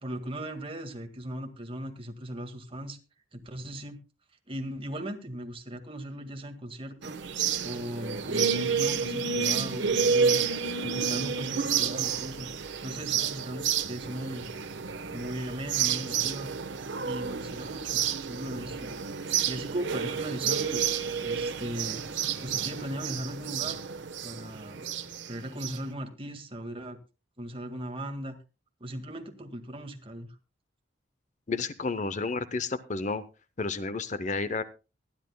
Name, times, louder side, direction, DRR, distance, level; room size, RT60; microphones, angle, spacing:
voice 1, 0.0-3.0 3.3-4.0 4.5-7.2 7.6-10.4 10.8-12.5 12.8-14.5 15.1-16.5 17.0-18.9 19.4-20.9 21.2-23.8 24.2-24.9 25.3-27.0 27.4-28.4 28.8-30.4, right 1 dB, 30° right, 6 dB, 1.8 m, -38 dB
sound 1, 7.0-25.8, right 6 dB, 75° right, 1.1 m, -30 dB
voice 2, 31.5-33.2 33.6-34.6, left 3 dB, 40° left, 13 dB, 0.7 m, -31 dB
24.0 x 11.0 x 2.2 m, 0.30 s
head